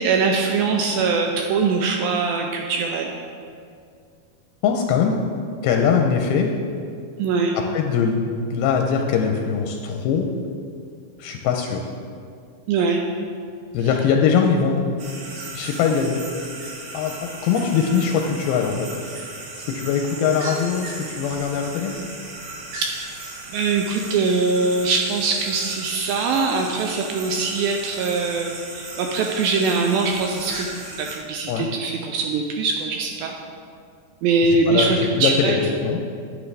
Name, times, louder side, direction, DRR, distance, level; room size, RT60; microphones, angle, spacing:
voice 1, 0.0-3.2 7.2-7.6 12.7-13.0 22.8-22.9 23.5-30.7 31.0-33.3 34.2-35.6, right 4 dB, 80° right, 2 dB, 2.1 m, -22 dB
voice 2, 4.6-5.2 5.6-6.5 7.6-10.3 11.2-11.9 13.7-15.0 15.5-16.3 16.9-18.9 19.5-21.9 31.5-31.7 34.7-36.1, left 6 dB, 85° left, 2 dB, 2.4 m, -22 dB
sound 1, 15.0-31.2, right 3 dB, 65° right, 2.4 m, -36 dB
9.7 x 9.2 x 3.3 m, 2.3 s
omnidirectional pair, 4.6 m